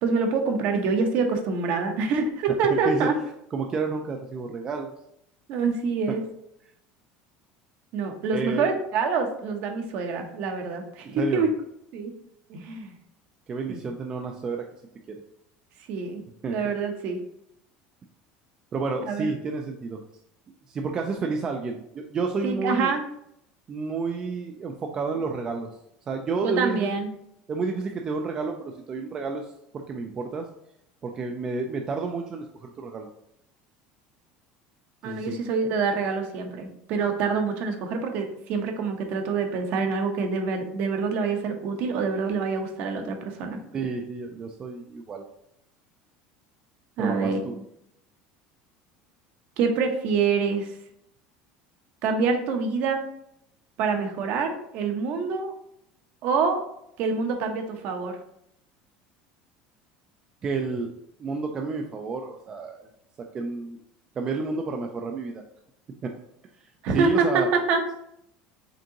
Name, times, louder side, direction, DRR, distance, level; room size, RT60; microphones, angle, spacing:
voice 1, 0.0-3.1 5.5-6.2 7.9-11.5 11.9-12.1 12.5-12.9 13.7-13.8 15.9-16.2 16.5-17.2 19.1-19.3 22.4-23.1 26.4-27.1 35.0-43.6 47.0-47.4 49.6-50.7 52.0-53.0 53.8-55.5 56.2-56.6 57.0-58.2 66.8-67.9, right 5 dB, 50° right, 5 dB, 0.8 m, -26 dB
voice 2, 3.5-4.9 8.3-8.7 11.1-11.4 13.5-14.6 16.4-16.6 18.7-20.0 20.7-22.9 23.7-25.7 26.1-27.0 27.5-30.5 31.0-33.1 35.0-35.4 43.7-45.3 47.0-47.6 60.4-60.9 61.2-62.8 63.3-63.8 64.2-65.4 66.0-66.2 66.9-67.5, right 4 dB, 25° right, 3 dB, 0.4 m, -30 dB
5.1 x 3.6 x 2.8 m, 0.76 s
cardioid pair, 165°, 3 cm